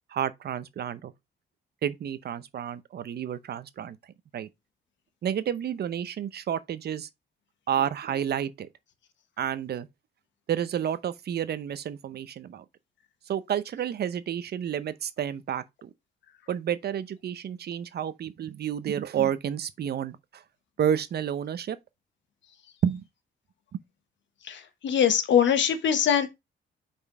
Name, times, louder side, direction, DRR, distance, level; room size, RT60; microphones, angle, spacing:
voice 1, 0.1-1.1 1.8-4.0 4.3-4.5 5.2-7.1 7.7-8.7 9.4-9.9 10.5-12.6 13.3-15.9 16.5-20.4 20.8-21.8 22.8-23.0, right 9 dB, 55° right, 0.7 m, -30 dB
voice 2, 24.4-26.3, left 8 dB, 70° left, 1.4 m, -23 dB
5.5 x 4.3 x 4.8 m
cardioid pair, 90°, 20 cm